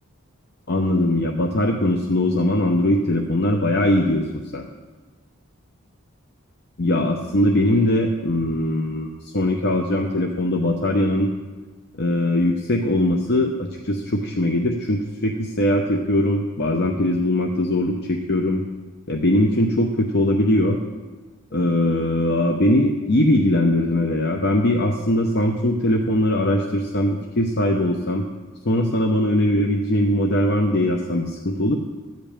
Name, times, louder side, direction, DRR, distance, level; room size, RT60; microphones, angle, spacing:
voice 1, 0.7-4.2 4.5-4.7 6.8-11.3 12.0-18.6 19.1-20.8 21.5-28.3 28.6-31.8, left 1 dB, 50° left, 2 dB, 0.8 m, -21 dB
13.5 x 5.2 x 8.7 m, 1.3 s
head